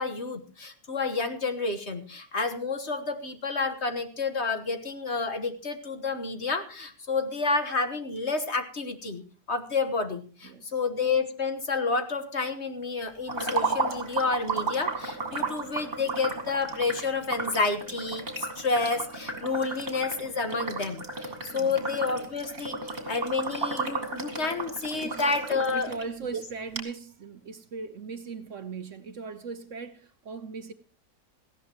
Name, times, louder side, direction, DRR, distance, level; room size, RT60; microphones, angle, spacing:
voice 1, 0.0-25.9 26.3-26.4, left 4 dB, 45° left, 1.6 m, -30 dB
voice 2, 10.4-10.7 21.5-21.8 25.0-25.2 25.7-30.7, right 5 dB, 55° right, 1.1 m, -39 dB
sound 1, 13.3-26.0 26.4-26.5 26.8-26.9, right 3 dB, 35° right, 2.8 m, -33 dB
18.5 x 15.0 x 3.0 m
omnidirectional pair, 1.7 m